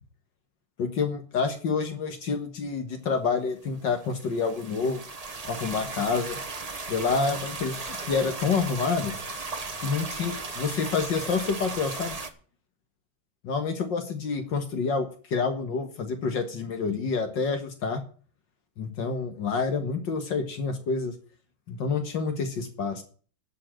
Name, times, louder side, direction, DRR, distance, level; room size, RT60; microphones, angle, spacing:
voice 1, 0.8-5.0 5.4-6.4 6.9-9.1 9.8-12.2 13.4-18.0 18.8-21.1 21.7-23.0, left 5 dB, 60° left, 6 dB, 2.0 m, -28 dB
sound 1, 3.9-12.3, right 3 dB, 30° right, 0.8 m, -36 dB
11.5 x 5.7 x 8.9 m, 0.42 s
omnidirectional pair, 2.3 m